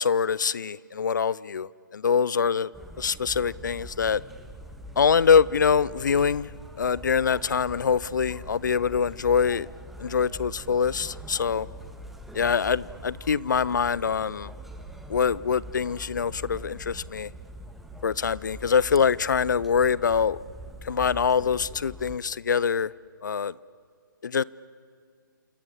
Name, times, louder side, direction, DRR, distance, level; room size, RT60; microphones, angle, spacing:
voice 1, 0.0-2.7 3.0-4.2 5.0-6.5 6.8-9.7 10.0-11.7 12.3-14.5 15.1-17.3 18.0-20.4 20.8-22.9 23.2-23.5 24.2-24.4, left 6 dB, 60° left, 22 dB, 0.6 m, -24 dB
sound 1, 2.7-22.2, equal, ahead, 1.6 m, -43 dB
28.0 x 28.0 x 7.4 m, 2.1 s
figure-of-eight pair, 135°, 11 cm